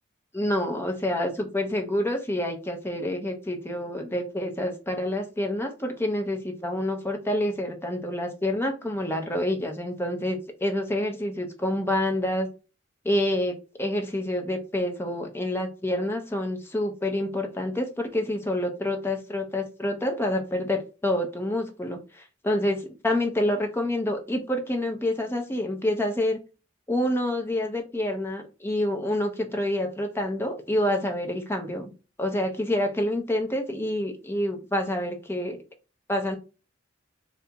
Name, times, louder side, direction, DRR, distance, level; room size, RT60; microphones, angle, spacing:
voice 1, 0.3-12.5 13.0-26.4 26.9-31.9 32.2-35.6 36.1-36.4, left 1 dB, 15° left, 0.6 m, -27 dB
2.8 x 2.5 x 3.4 m
head